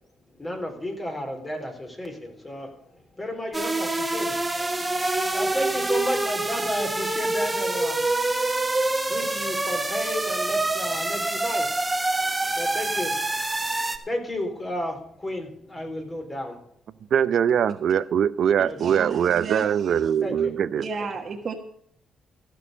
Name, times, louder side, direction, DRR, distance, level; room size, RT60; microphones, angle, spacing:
voice 1, 0.4-2.7 3.2-4.4 5.3-8.0 9.1-12.0 12.6-13.2 13.6-16.6 18.7-18.9 20.2-20.5, left 1 dB, 20° left, 3 dB, 3.8 m, -32 dB
sound 1, 3.5-14.0, right 2 dB, 15° right, 1.3 m, -26 dB
voice 2, 17.1-20.8, right 8 dB, 65° right, 16 dB, 0.6 m, -22 dB
voice 3, 18.6-19.9 20.8-21.5, right 4 dB, 50° right, 0 dB, 1.4 m, -33 dB
15.0 x 6.5 x 6.7 m, 0.67 s
cardioid pair, 90°, 0 cm